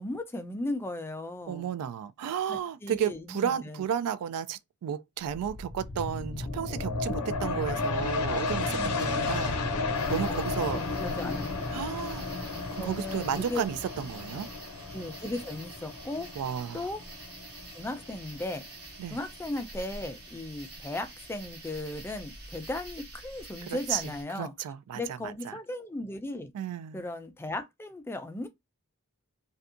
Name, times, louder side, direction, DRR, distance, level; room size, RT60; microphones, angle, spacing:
voice 1, 0.0-1.7 2.5-3.8 8.8-9.1 10.7-11.7 12.8-13.6 14.9-16.3 16.7-17.0 17.7-18.6 19.1-24.5 24.9-26.5 26.9-28.5, left 1 dB, 10° left, 0.3 m, -36 dB
voice 2, 1.5-9.6 10.1-10.9 11.7-12.3 12.7-14.5 16.4-16.9 19.0-19.2 23.6-24.0 24.4-25.6 26.5-27.0, right 8 dB, 85° right, 0.3 m, -33 dB
sound 1, 5.2-18.5 19.0-19.1, left 3 dB, 85° left, 0.6 m, -33 dB
sound 2, 9.9-24.2, right 2 dB, 50° right, 1.3 m, -47 dB
2.6 x 2.3 x 2.4 m
head